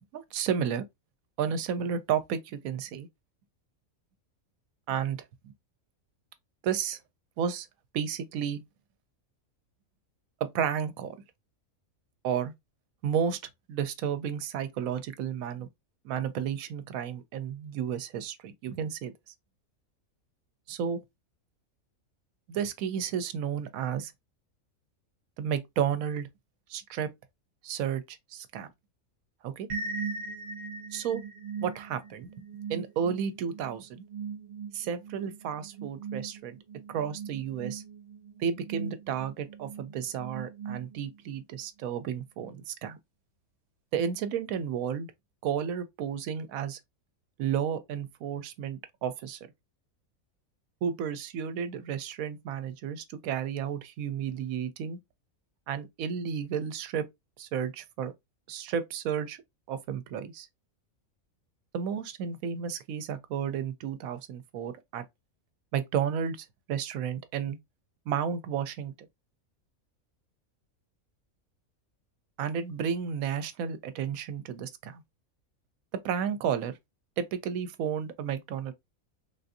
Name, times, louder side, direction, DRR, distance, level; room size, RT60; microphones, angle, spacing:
voice 1, 0.1-0.8 1.4-3.1 4.9-5.5 6.6-7.0 7.4-7.7 7.9-8.6 10.4-11.1 12.2-12.5 13.0-13.4 13.7-15.7 16.0-19.1 20.7-21.0 22.5-24.1 25.4-26.3 26.7-27.1 27.6-28.7 29.4-29.7 30.9-31.2 31.6-32.3 32.7-34.0 34.7-36.6 36.9-37.8 38.4-43.0 43.9-45.1 45.4-46.8 47.4-49.4 50.8-55.0 55.7-57.0 57.4-58.1 58.5-59.4 59.7-60.5 61.7-65.0 65.7-67.6 68.1-69.1 72.4-75.0 76.0-76.7 77.2-78.7, right 8 dB, 80° right, 1.0 m, -32 dB
sound 1, 29.7-41.3, right 5 dB, 55° right, 1.0 m, -40 dB
3.6 x 2.5 x 2.6 m
omnidirectional pair, 1.4 m